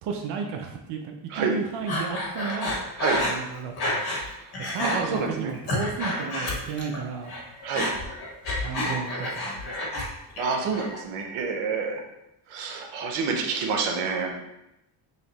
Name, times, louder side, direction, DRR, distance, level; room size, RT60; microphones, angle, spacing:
voice 1, 0.0-2.8 3.2-4.2 4.6-7.3 8.6-9.8, right 5 dB, 60° right, 3 dB, 0.6 m, -33 dB
Breathing, 1.9-4.3 4.5-5.0 5.4-7.0 7.2-10.1 10.4-11.0, left 1 dB, 50° left, 1.3 m, -29 dB
voice 2, 4.0-4.5 4.8-5.5 7.6-7.9 10.4-12.0 12.5-14.3, right 5 dB, 85° right, 2 dB, 0.8 m, -28 dB
3.3 x 2.8 x 4.0 m, 0.88 s
cardioid pair, 95°, 48 cm